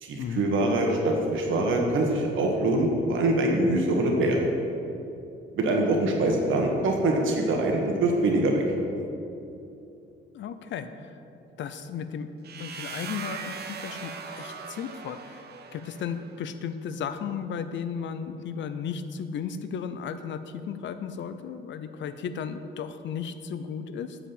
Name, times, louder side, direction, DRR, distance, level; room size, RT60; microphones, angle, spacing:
voice 1, 0.0-4.5 5.6-8.6, right 2 dB, 75° right, 1 dB, 1.7 m, -24 dB
voice 2, 10.3-11.2 11.6-12.3 12.6-15.5 15.7-24.2, left 7 dB, 70° left, 10 dB, 0.6 m, -35 dB
sound 1, 12.4-16.3, right 6 dB, 55° right, 0.8 m, -39 dB
10.0 x 5.0 x 7.1 m, 2.7 s
cardioid pair, 90°, 20 cm